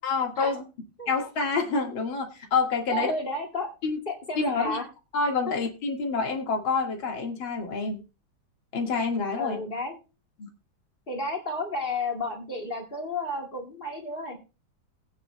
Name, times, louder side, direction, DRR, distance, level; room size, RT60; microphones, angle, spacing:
voice 1, 0.0-0.7 1.1-3.1 3.8-4.0 4.4-4.8 5.1-8.0 8.7-9.6 10.4-10.5, left 4 dB, 80° left, 2 dB, 2.7 m, -27 dB
voice 2, 2.9-3.7 4.1-4.8 9.4-10.0 11.1-14.4, left 2 dB, 25° left, 1 dB, 2.4 m, -31 dB
20.0 x 9.1 x 2.2 m, 0.31 s
omnidirectional pair, 2.2 m